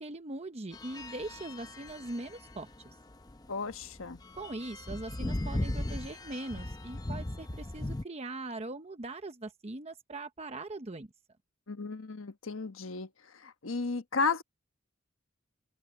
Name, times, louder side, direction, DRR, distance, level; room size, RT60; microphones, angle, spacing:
voice 1, 0.0-2.7 4.3-11.1, right 2 dB, 30° right, 0.9 m, -41 dB
sound 1, 0.7-8.0, left 1 dB, 20° left, 0.7 m, -38 dB
voice 2, 3.5-4.2 11.7-14.4, left 4 dB, 85° left, 1.2 m, -34 dB
head